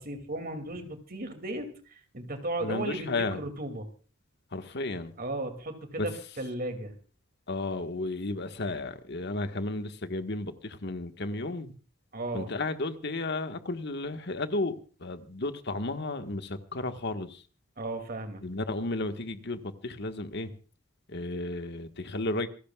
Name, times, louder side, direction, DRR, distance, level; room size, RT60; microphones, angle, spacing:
voice 1, 0.0-1.7 2.1-3.9 5.2-6.9 12.1-12.5 17.8-18.5, right 2 dB, 45° right, 6 dB, 2.7 m, -35 dB
voice 2, 2.6-3.4 4.5-5.1 6.0-6.1 7.5-11.7 12.3-17.4 18.4-20.5 21.1-22.5, left 2 dB, 55° left, 8 dB, 1.6 m, -33 dB
27.0 x 15.0 x 2.4 m, 0.38 s
head